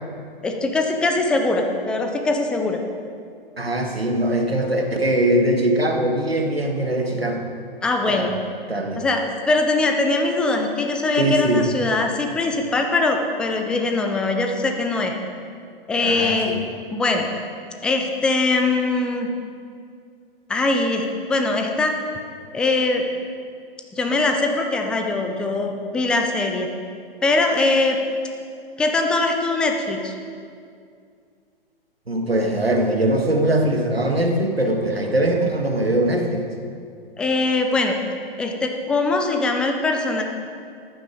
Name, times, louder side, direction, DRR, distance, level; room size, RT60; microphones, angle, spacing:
voice 1, 0.4-2.8 7.8-8.4 9.0-15.2 15.9-16.5 16.9-17.3 17.8-19.3 20.5-22.0 22.5-23.1 23.9-26.7 27.2-28.0 28.8-30.1 37.2-38.0 38.4-40.2, left 2 dB, 5° left, 4 dB, 0.3 m, -22 dB
voice 2, 3.6-7.4 8.1-8.3 8.7-9.0 11.2-11.7 16.0-16.6 32.1-36.5, right 1 dB, 85° right, 3 dB, 1.8 m, -21 dB
14.0 x 10.5 x 5.0 m, 2.3 s
figure-of-eight pair, 115°, 29 cm